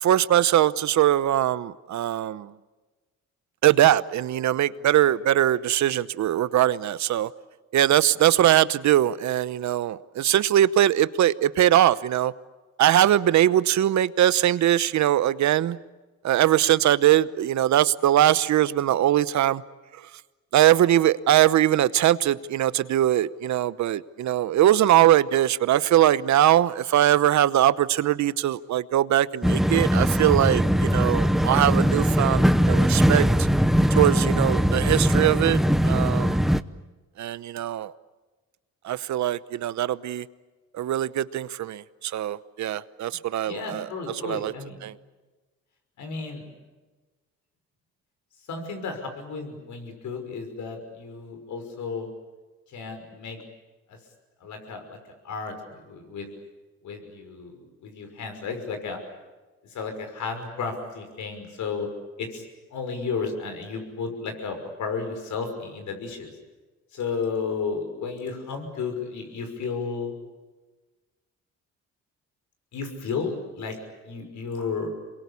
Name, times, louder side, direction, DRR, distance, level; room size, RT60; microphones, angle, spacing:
voice 1, 0.0-2.5 3.6-7.3 7.7-12.3 12.8-15.8 16.2-19.6 20.5-33.5 33.9-36.4 37.2-37.9 38.8-40.3 40.7-43.9 44.2-44.5 44.8-44.9, right 12 dB, 70° right, 0.9 m, -21 dB
sound 1, 29.4-36.6, equal, ahead, 0.8 m, -21 dB
voice 2, 43.5-44.8 46.0-46.5 48.5-52.1 52.7-53.4 53.9-54.0 54.4-55.0 55.2-56.3 56.8-59.0 59.7-61.9 62.2-62.4 62.7-66.3 66.9-70.2 72.7-73.8 74.1-74.9, left 5 dB, 70° left, 6.0 m, -33 dB
27.5 x 22.5 x 8.4 m
cardioid pair, 90°, 30 cm